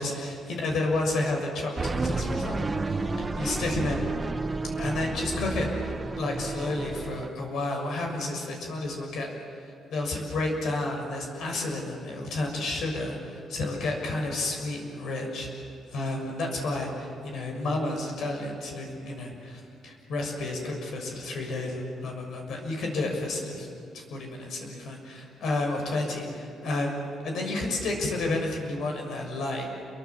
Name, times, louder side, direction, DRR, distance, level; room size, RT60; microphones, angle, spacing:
voice 1, 0.0-2.9 3.3-4.0 4.8-23.7 23.9-29.7, left 2 dB, 70° left, 2 dB, 6.6 m, -31 dB
sound 1, 1.8-7.3, right 3 dB, 20° right, 1.5 m, -31 dB
28.5 x 23.0 x 7.3 m, 2.5 s
cardioid pair, 130°, 0 cm